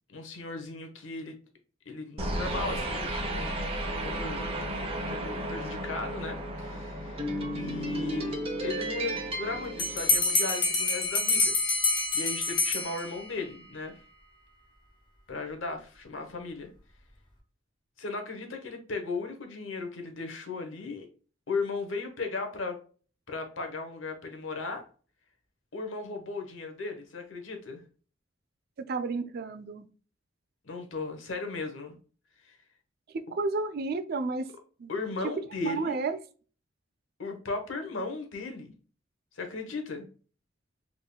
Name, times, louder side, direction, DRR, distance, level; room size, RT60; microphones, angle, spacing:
voice 1, 0.1-1.4 1.8-3.7 4.0-4.5 4.7-8.3 8.6-11.6 12.1-13.9 15.3-16.7 18.0-21.1 21.5-22.8 23.3-24.8 25.7-27.8 30.6-32.0 32.4-32.6 34.9-36.0 37.2-38.7 39.3-40.1, left 3 dB, 80° left, 5 dB, 1.0 m, -36 dB
sound 1, 2.2-10.7, right 1 dB, 30° right, 0.8 m, -33 dB
Bell, 9.8-13.4, left 3 dB, 25° left, 1.0 m, -27 dB
voice 2, 28.9-29.9 33.1-34.5 34.8-34.9 35.6-36.2, right 3 dB, 55° right, 10 dB, 0.4 m, -31 dB
3.7 x 3.6 x 2.3 m, 0.39 s
head